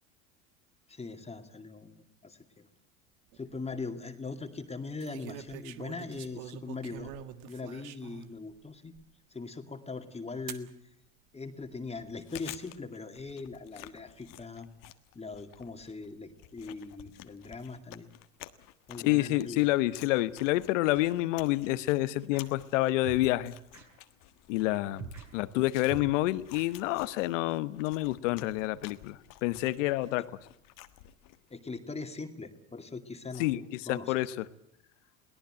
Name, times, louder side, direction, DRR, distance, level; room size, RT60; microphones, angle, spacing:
voice 1, 0.9-2.4 3.3-7.1 7.5-8.9 9.3-10.7 11.3-14.7 15.1-18.1 18.9-19.7 31.5-34.1, left 3 dB, 15° left, 6 dB, 2.4 m, -41 dB
sound 1, 3.3-3.8 5.0-8.3 9.0-9.1 10.5-10.7 11.6-12.1, right 10 dB, 65° right, 1.8 m, -45 dB
Chewing mastication, 12.0-31.5, left 15 dB, 55° left, 1.6 m, -52 dB
voice 2, 19.0-23.5 24.5-30.3 33.4-34.4, left 17 dB, 70° left, 15 dB, 1.2 m, -28 dB
sound 2, 20.9-21.0 22.3-22.4 23.0-23.3 23.7-23.8 25.0-25.2 25.9-26.1 26.5-26.7, right 6 dB, 45° right, 6.4 m, -42 dB
22.5 x 17.5 x 8.9 m, 0.74 s
hypercardioid pair, 85°, 38 cm